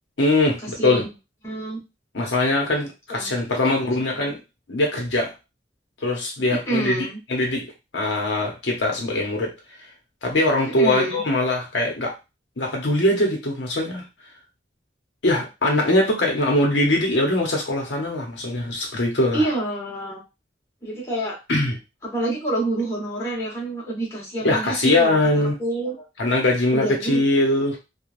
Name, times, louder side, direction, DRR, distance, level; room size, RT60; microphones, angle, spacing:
voice 1, 0.2-1.0 2.1-4.4 4.7-5.3 6.0-7.0 7.3-9.5 10.2-12.1 12.6-14.0 15.2-19.5 21.5-21.8 24.4-25.6 26.2-27.8, left 1 dB, 80° left, 1 dB, 0.8 m, -22 dB
voice 2, 0.8-1.1 1.4-1.8 3.1-3.3 6.6-7.2 10.8-11.2 19.3-20.2 20.8-21.4 22.0-26.0 26.7-27.2, right 1 dB, 15° left, -6 dB, 1.3 m, -27 dB
3.1 x 2.2 x 2.5 m, 0.26 s
head